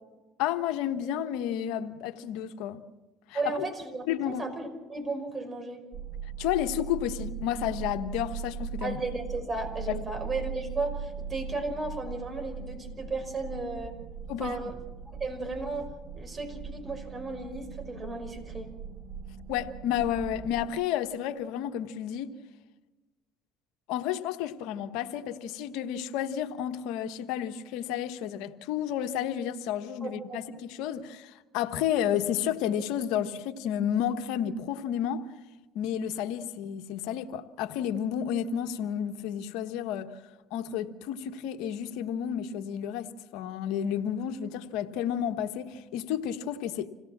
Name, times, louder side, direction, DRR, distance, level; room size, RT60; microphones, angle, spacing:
voice 1, 0.4-2.8 3.3-3.6 4.1-4.4 6.4-9.0 9.9-10.0 14.3-14.7 19.5-22.3 23.9-35.3 35.7-40.1 40.5-46.9, left 10 dB, 75° left, 1.3 m, -31 dB
voice 2, 3.3-5.8 8.8-13.9 14.4-14.8 15.2-15.9 16.1-18.7 30.0-30.4, right 3 dB, 30° right, 5.6 m, -35 dB
sound 1, 5.9-20.7, right 7 dB, 45° right, 1.4 m, -40 dB
27.0 x 17.0 x 7.4 m
supercardioid pair, 90°, 0 cm